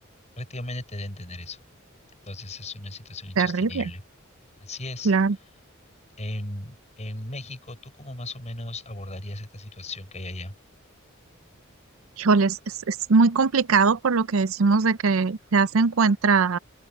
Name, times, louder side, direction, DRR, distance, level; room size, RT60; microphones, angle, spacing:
voice 1, 0.4-1.6 2.2-4.0 4.6-5.1 6.2-10.5, left 2 dB, 35° left, 6.1 m, -36 dB
voice 2, 3.4-3.8 5.1-5.4 12.2-12.6 12.9-16.6, right 4 dB, 80° right, 0.6 m, -21 dB
open air
head